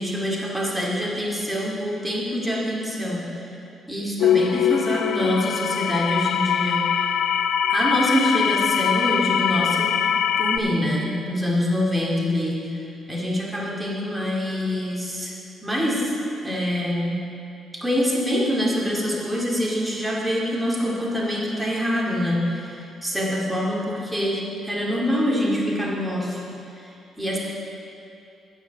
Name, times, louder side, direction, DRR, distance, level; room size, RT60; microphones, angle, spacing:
voice 1, 0.0-3.5 3.9-6.9 7.7-10.0 10.4-16.1 16.4-17.2 17.8-26.4 26.8-26.9 27.2-27.4, equal, 5° right, -4 dB, 2.2 m, -25 dB
sound 1, 4.2-10.6, left 8 dB, 85° left, 0.4 m, -22 dB
8.7 x 7.0 x 6.7 m, 2.7 s
cardioid pair, 90°, 0 cm